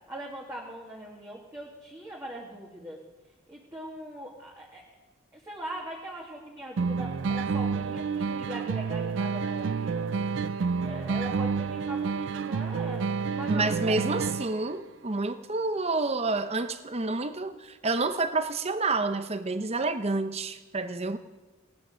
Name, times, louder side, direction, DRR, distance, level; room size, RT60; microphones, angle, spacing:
voice 1, 0.1-3.0 3.5-4.8 5.3-10.1 10.8-14.0 14.3-14.7, right 1 dB, 15° right, -4 dB, 2.0 m, -41 dB
acoustic guitar, 6.8-14.7, right 5 dB, 60° right, 0.4 m, -29 dB
voice 2, 13.5-21.2, right 3 dB, 30° right, 10 dB, 0.8 m, -29 dB
18.0 x 10.5 x 6.4 m, 1.2 s
head